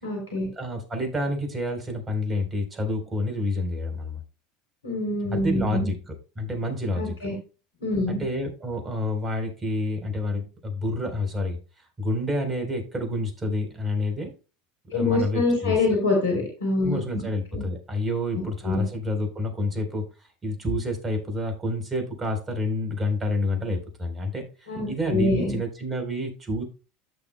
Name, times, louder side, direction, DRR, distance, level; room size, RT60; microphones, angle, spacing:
voice 1, 0.0-0.5 4.8-5.9 6.9-7.3 7.8-8.2 14.9-17.3 17.5-17.6 18.6-18.8 24.7-25.6, left 2 dB, 85° left, 0 dB, 3.4 m, -25 dB
voice 2, 0.6-4.2 5.3-7.1 8.1-11.6 12.0-14.3 14.9-15.8 16.8-20.0 20.4-26.6, left 1 dB, 25° right, 5 dB, 4.0 m, -28 dB
14.0 x 6.1 x 2.3 m, 0.34 s
hypercardioid pair, 80°, 0 cm